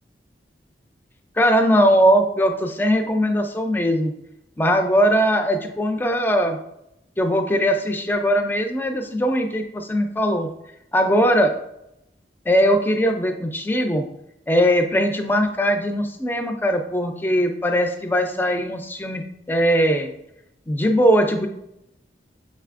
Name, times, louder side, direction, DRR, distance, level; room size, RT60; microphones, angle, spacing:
voice 1, 1.4-4.1 4.6-6.6 7.2-10.5 10.9-11.5 12.5-14.0 14.5-20.1 20.7-21.5, equal, 10° left, 6 dB, 0.3 m, -20 dB
6.2 x 3.2 x 2.4 m, 0.83 s
head